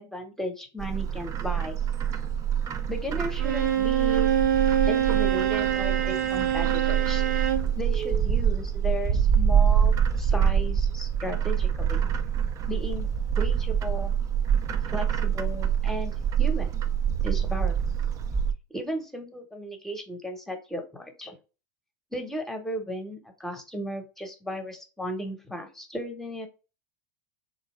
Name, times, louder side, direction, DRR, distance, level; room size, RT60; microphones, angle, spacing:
voice 1, 0.0-1.8 2.9-4.3 4.9-7.2 7.8-12.0 12.7-13.1 13.4-14.1 14.9-16.7 17.2-17.8 18.7-21.3 22.1-26.5, equal, 5° left, 4 dB, 0.9 m, -35 dB
Bird, 0.8-18.5, right 8 dB, 35° right, 0.4 m, -26 dB
Bowed string instrument, 3.4-7.7, right 9 dB, 85° right, 0.7 m, -25 dB
3.8 x 2.7 x 3.0 m, 0.32 s
hypercardioid pair, 110°, 10 cm